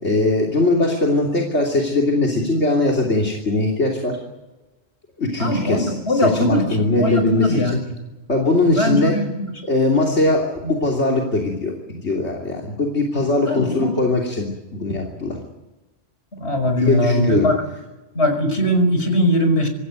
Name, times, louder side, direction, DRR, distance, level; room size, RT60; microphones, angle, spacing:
voice 1, 0.0-4.2 5.2-7.8 8.3-9.2 9.6-15.4 16.8-17.5, left 2 dB, 90° left, -1 dB, 3.4 m, -20 dB
voice 2, 5.4-6.6 6.9-7.8 8.7-9.3 13.5-13.9 16.4-17.6 18.1-19.7, left 1 dB, 70° left, 6 dB, 5.7 m, -20 dB
26.0 x 15.5 x 9.3 m, 1.1 s
omnidirectional pair, 1.1 m